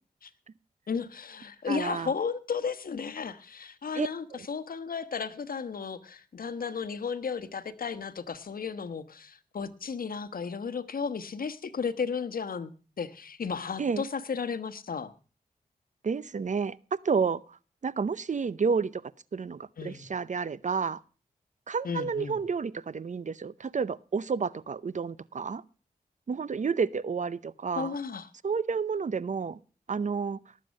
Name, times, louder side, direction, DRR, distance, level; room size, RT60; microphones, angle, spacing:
voice 1, 0.9-12.7 13.0-15.1 19.8-20.1 21.8-22.4 27.7-28.3, left 6 dB, 70° left, 1.2 m, -34 dB
voice 2, 1.7-2.1 3.9-4.4 13.8-14.0 16.0-17.6 17.8-21.0 21.7-25.6 26.3-27.9 28.4-29.6 29.9-30.4, right 5 dB, 55° right, 0.7 m, -30 dB
18.5 x 7.6 x 6.4 m
cardioid pair, 55°, 15 cm